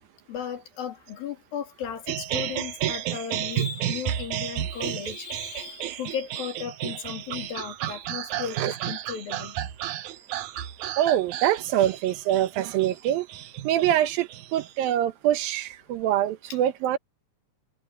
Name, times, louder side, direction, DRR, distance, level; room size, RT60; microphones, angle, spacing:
voice 1, 0.3-9.6, left 8 dB, 80° left, 4.4 m, -35 dB
sound 1, 2.1-14.8, right 12 dB, 65° right, 2.3 m, -32 dB
voice 2, 11.0-13.3 13.6-17.0, right 12 dB, 85° right, 2.8 m, -24 dB
omnidirectional pair, 4.1 m